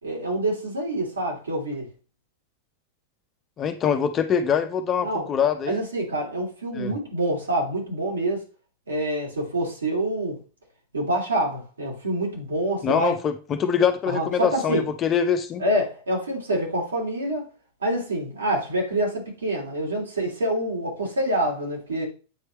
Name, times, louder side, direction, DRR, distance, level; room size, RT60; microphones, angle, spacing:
voice 1, 0.0-1.9 5.0-5.3 5.7-8.4 8.9-10.4 10.9-13.1 14.1-14.9 15.6-17.5 17.8-22.1, right 1 dB, 70° right, 2.9 m, -26 dB
voice 2, 3.6-5.8 6.7-6.9 12.8-15.6, left 7 dB, 30° left, 0.8 m, -24 dB
8.6 x 4.6 x 3.1 m
figure-of-eight pair, 90°, 0 cm